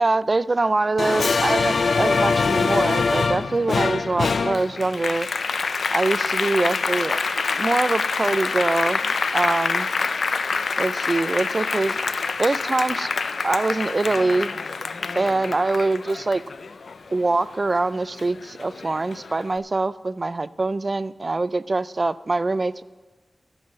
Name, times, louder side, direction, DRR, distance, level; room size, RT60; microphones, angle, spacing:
voice 1, 0.0-5.3 5.9-7.2 7.5-9.9 10.8-12.0 12.4-13.1 13.4-14.6 15.2-16.4 17.1-22.8, right 3 dB, 40° right, 16 dB, 0.3 m, -24 dB
Applause, 1.0-17.8 18.2-19.4, left 4 dB, 80° left, 0.4 m, -25 dB
13.0 x 5.6 x 8.9 m, 1.3 s
wide cardioid pair, 95°, 0 cm